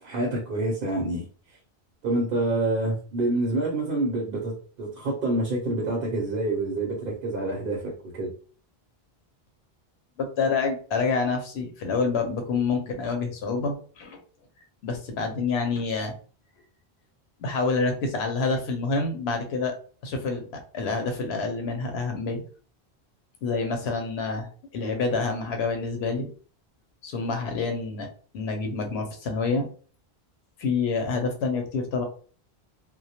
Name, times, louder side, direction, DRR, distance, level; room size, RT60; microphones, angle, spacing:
voice 1, 0.0-1.2 2.0-8.3, right 2 dB, 65° right, -1 dB, 0.8 m, -27 dB
voice 2, 10.2-14.2 14.8-16.1 17.4-19.7 20.0-20.4 20.7-22.4 23.4-24.5 24.7-26.3 27.0-28.1 28.3-29.7 30.6-32.0, left 4 dB, 90° left, 5 dB, 0.8 m, -27 dB
2.1 x 2.1 x 2.7 m, 0.41 s
omnidirectional pair, 1.1 m